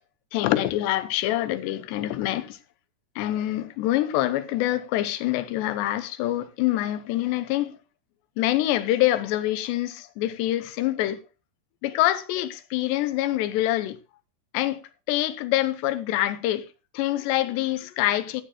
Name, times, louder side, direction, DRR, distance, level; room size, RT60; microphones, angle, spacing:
voice 1, 0.3-2.6 3.2-7.8 8.4-11.2 11.8-14.0 14.5-14.8 15.1-16.7 16.9-18.4, left 14 dB, 75° left, 2.7 m, -25 dB
16.0 x 11.5 x 2.2 m
omnidirectional pair, 5.6 m